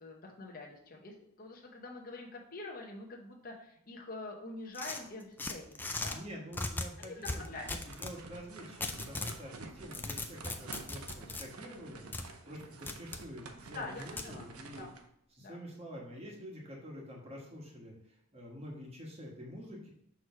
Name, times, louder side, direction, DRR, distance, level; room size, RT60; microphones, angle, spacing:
voice 1, 0.0-6.2 7.0-7.8 13.7-14.5 14.8-14.9 15.4-15.6, left 2 dB, 40° left, 0 dB, 0.9 m, -45 dB
sound 1, 4.7-6.2 6.5-8.2 8.8-9.4 9.8-11.4 12.1-12.2 12.9-13.2 14.2-14.3, left 2 dB, 10° left, 0.3 m, -38 dB
voice 2, 6.1-12.1 12.5-14.9 15.3-19.9, equal, 30° right, -2 dB, 1.3 m, -47 dB
sound 2, 7.3-15.1, right 4 dB, 85° right, 0.7 m, -50 dB
6.1 x 3.1 x 5.7 m, 0.72 s
head